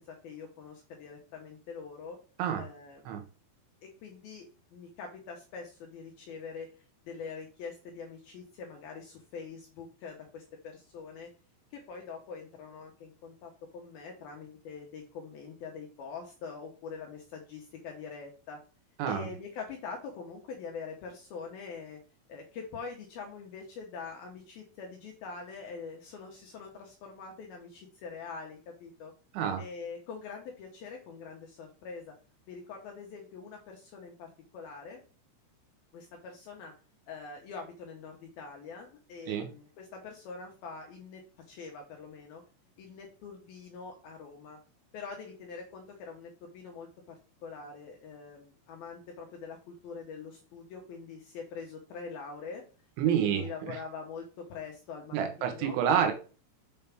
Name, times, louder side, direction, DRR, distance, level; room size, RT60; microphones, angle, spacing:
voice 1, 0.0-2.2 2.6-3.1 4.0-4.4 4.7-6.7 7.0-11.3 11.7-18.6 19.1-22.0 22.3-29.1 29.6-32.1 32.5-35.0 35.9-36.7 37.1-41.2 41.5-42.4 42.8-44.6 44.9-52.6 53.1-55.8, left 5 dB, 70° left, 1 dB, 2.4 m, -44 dB
voice 2, 53.0-53.8 55.1-56.1, right 8 dB, 75° right, 5 dB, 3.5 m, -28 dB
7.0 x 6.2 x 3.5 m, 0.36 s
omnidirectional pair, 5.5 m